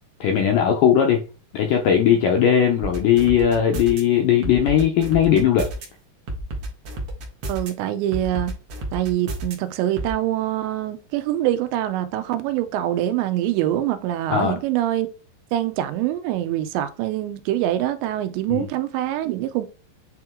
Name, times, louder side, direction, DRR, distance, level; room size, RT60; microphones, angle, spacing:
voice 1, 0.2-1.2 1.5-5.7 14.3-14.6 18.5-18.7, left 9 dB, 85° left, 1.9 m, -18 dB
sound 1, 2.8-4.0 4.4-5.9 6.3-7.7 8.1-9.5 10.0-10.1, right 2 dB, 70° right, 1.3 m, -31 dB
voice 2, 7.5-8.5 8.9-15.1 15.5-19.7, right 13 dB, 90° right, 3.0 m, -24 dB
8.7 x 3.0 x 3.6 m
omnidirectional pair, 5.0 m